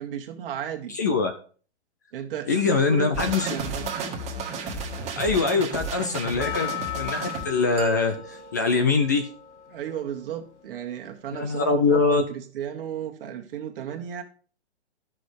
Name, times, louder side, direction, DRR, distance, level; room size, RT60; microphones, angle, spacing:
voice 1, 0.0-0.9 2.1-3.9 9.7-14.2, right 9 dB, 50° right, 4 dB, 1.7 m, -34 dB
voice 2, 0.9-1.3 2.5-3.5 5.2-9.3 11.3-12.2, left 4 dB, 20° left, 7 dB, 0.3 m, -23 dB
sound 1, 3.1-7.4, right 3 dB, 20° right, 1.6 m, -32 dB
Percussion, 6.4-10.8 11.4-11.5, left 13 dB, 90° left, 0.8 m, -37 dB
sound 2, 7.8-9.8, right 16 dB, 35° right, 1.6 m, -37 dB
11.0 x 6.3 x 4.8 m, 0.42 s
hypercardioid pair, 145°, 34 cm